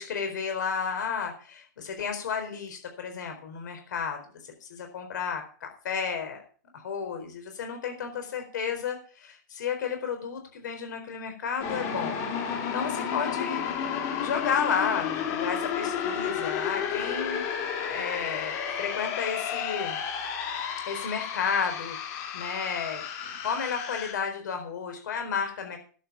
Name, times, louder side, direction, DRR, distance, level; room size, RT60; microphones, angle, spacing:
voice 1, 0.0-4.2 4.6-6.4 6.7-13.6 14.2-20.0 20.9-25.8, left 6 dB, 75° left, 5 dB, 4.3 m, -32 dB
sound 1, 11.6-24.1, left 8 dB, 40° left, 3.5 m, -32 dB
11.5 x 8.2 x 7.1 m, 0.41 s
hypercardioid pair, 140°, 10 cm